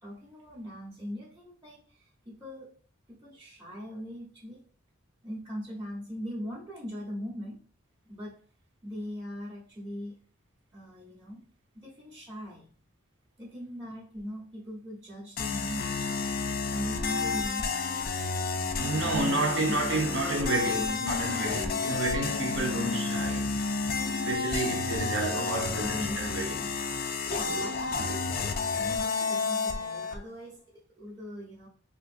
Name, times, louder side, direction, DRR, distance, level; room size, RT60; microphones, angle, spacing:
voice 1, 0.0-2.8 3.1-4.6 5.2-7.6 8.0-8.4 8.8-10.2 10.7-11.4 11.7-12.7 13.4-16.2 16.7-17.7 18.8-19.9 27.3-31.7, equal, 15° right, 0.8 m, -40 dB
sound 1, 15.4-30.2, left 4 dB, 50° left, 0.4 m, -31 dB
voice 2, 18.8-23.6 24.0-26.7 27.5-27.6 28.0-28.2, right 2 dB, 70° right, 0.8 m, -30 dB
3.7 x 2.5 x 2.5 m
head